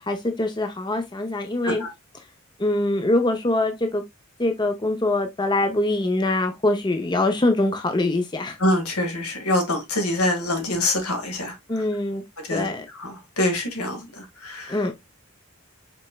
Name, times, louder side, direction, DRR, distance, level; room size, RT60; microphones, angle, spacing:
voice 1, 0.1-1.8 2.6-4.0 4.4-8.6 11.7-12.2 12.5-12.8 14.7-14.9, left 2 dB, 20° left, 0.5 m, -23 dB
voice 2, 8.6-11.8 12.4-14.8, left 1 dB, 90° left, 1.8 m, -25 dB
5.2 x 4.3 x 2.2 m
head